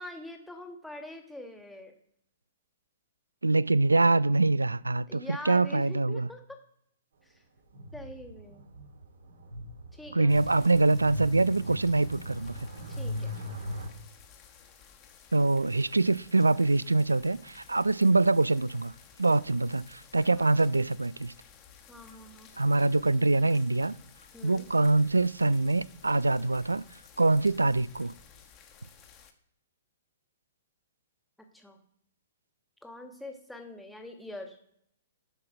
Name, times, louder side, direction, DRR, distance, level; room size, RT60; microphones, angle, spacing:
voice 1, 0.0-1.9 5.1-6.6 7.2-7.4 7.9-8.7 9.9-10.3 12.9-13.3 20.3-20.6 21.9-22.5 24.3-24.7 31.5-31.8 32.8-34.6, left 1 dB, 5° left, 1.5 m, -44 dB
voice 2, 3.4-6.3 10.1-12.5 15.3-18.9 19.2-21.3 22.6-23.9 24.4-26.8 27.2-28.1, right 2 dB, 85° right, 0.3 m, -24 dB
sound 1, 7.7-13.9, equal, 60° right, 2.6 m, -39 dB
sound 2, 10.3-29.3, left 7 dB, 30° left, 1.1 m, -55 dB
7.6 x 5.9 x 4.8 m
figure-of-eight pair, 115°, 0 cm